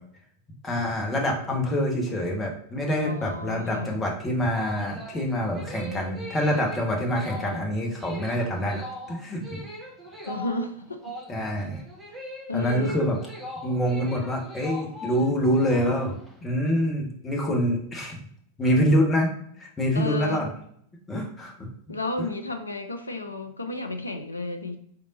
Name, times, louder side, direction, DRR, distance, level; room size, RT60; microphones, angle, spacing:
voice 1, 0.6-8.8 9.1-9.6 11.3-11.8 12.5-13.2 13.6-16.1 16.4-18.2 18.6-19.3 19.6-20.5 21.1-21.7 22.2-22.3, equal, 15° left, 0 dB, 1.0 m, -26 dB
voice 2, 3.0-4.0 10.3-11.1 12.5-13.0 19.9-20.5 21.9-24.8, left 2 dB, 80° left, 6 dB, 0.4 m, -32 dB
sound 1, 4.4-16.4, left 1 dB, ahead, 1.5 m, -40 dB
3.4 x 2.6 x 4.0 m, 0.64 s
figure-of-eight pair, 90°, 0 cm